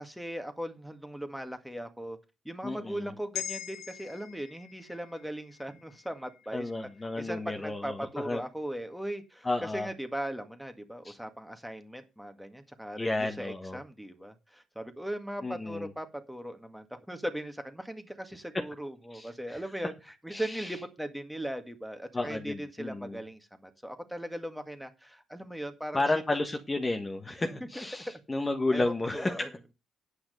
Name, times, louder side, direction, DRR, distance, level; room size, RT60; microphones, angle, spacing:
voice 1, 0.0-2.2 2.5-6.7 7.2-26.0 27.6-27.9 28.7-29.5, right 1 dB, ahead, 1.9 m, -39 dB
voice 2, 2.6-3.1 6.5-8.4 9.4-9.9 11.0-11.1 13.0-13.8 15.4-15.9 19.1-19.6 20.3-20.7 22.1-23.2 25.9-29.5, left 2 dB, 20° left, 1.4 m, -32 dB
sound 1, 3.3-7.8 8.2-8.4, left 11 dB, 85° left, 1.2 m, -44 dB
9.8 x 5.8 x 6.7 m
cardioid pair, 90°, 0 cm